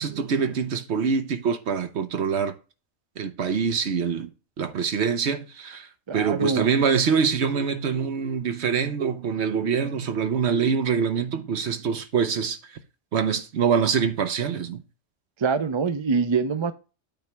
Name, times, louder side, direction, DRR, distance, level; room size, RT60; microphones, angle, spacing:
voice 1, 0.0-2.5 3.2-4.3 4.6-12.7 13.1-14.8, right 6 dB, 65° right, 1.1 m, -25 dB
voice 2, 6.1-6.7 15.4-16.7, right 5 dB, 35° right, 0.4 m, -24 dB
8.9 x 3.2 x 5.8 m
omnidirectional pair, 1.3 m